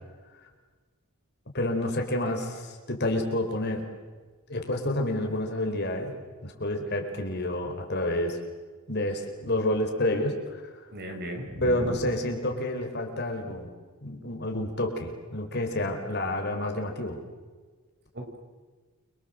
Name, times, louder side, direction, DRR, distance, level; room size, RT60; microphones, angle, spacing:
voice 1, 1.5-3.9 4.5-6.1 6.4-8.4 8.9-10.6 11.6-13.7 14.0-17.2, left 1 dB, 50° left, 3 dB, 4.9 m, -29 dB
voice 2, 10.9-12.1 18.1-18.4, equal, 45° right, 3 dB, 6.2 m, -35 dB
29.5 x 25.0 x 7.8 m, 1.4 s
head